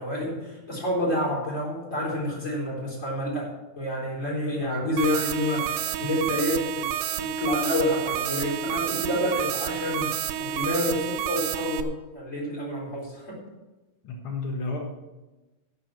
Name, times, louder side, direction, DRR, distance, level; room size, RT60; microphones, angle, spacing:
voice 1, 0.0-3.5 3.8-6.9 7.2-13.4, left 1 dB, 20° left, -4 dB, 3.8 m, -28 dB
voice 2, 4.5-4.9 14.0-14.8, left 3 dB, 75° left, 1 dB, 1.1 m, -32 dB
sound 1, 5.0-11.8, right 10 dB, 85° right, 2.8 m, -30 dB
11.5 x 7.6 x 7.4 m, 1.1 s
omnidirectional pair, 4.8 m